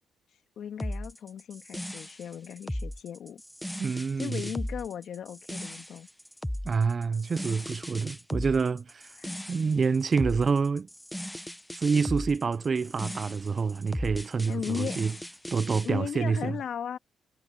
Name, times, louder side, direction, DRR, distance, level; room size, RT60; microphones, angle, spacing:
voice 1, 0.6-3.4 4.2-6.1 9.2-9.4 14.5-15.0 15.8-17.0, left 8 dB, 65° left, 2.1 m, -36 dB
sound 1, 0.8-15.9, equal, 5° left, 0.8 m, -37 dB
voice 2, 3.8-4.4 6.6-9.2 9.5-10.9 11.7-15.1 15.5-16.6, right 5 dB, 40° right, 0.4 m, -27 dB
cardioid pair, 90°, 0 cm